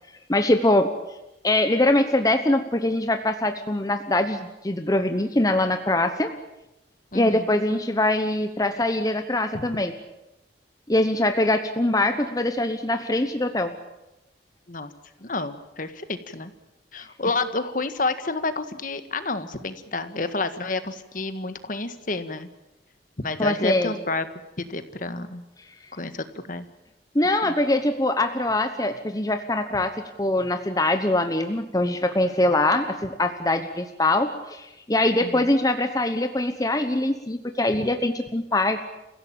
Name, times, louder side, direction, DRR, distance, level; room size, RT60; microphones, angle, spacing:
voice 1, 0.3-0.9 1.4-6.3 7.1-9.9 10.9-13.7 23.4-23.9 27.1-29.9 30.2-38.9, left 1 dB, 20° left, 7 dB, 1.1 m, -23 dB
voice 2, 7.1-7.5 9.5-9.6 14.7-14.9 15.2-16.5 16.9-22.5 23.2-24.3 24.6-25.4 25.9-26.6 27.4-27.5 35.2-35.5, left 3 dB, 50° left, 10 dB, 1.7 m, -29 dB
30.0 x 16.0 x 8.9 m, 0.97 s
head